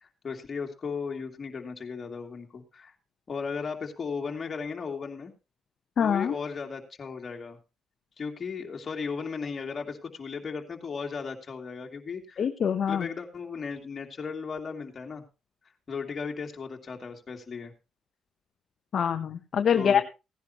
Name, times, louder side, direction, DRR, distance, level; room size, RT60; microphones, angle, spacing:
voice 1, 0.0-2.9 3.3-5.3 6.0-7.6 8.2-12.4 12.9-15.2 15.9-17.7 19.7-20.0, left 5 dB, 40° left, 3 dB, 2.5 m, -36 dB
voice 2, 6.0-6.3 12.4-13.1 18.9-20.0, left 7 dB, 55° left, 7 dB, 0.8 m, -25 dB
17.0 x 10.5 x 3.0 m, 0.28 s
cardioid pair, 90°, 0 cm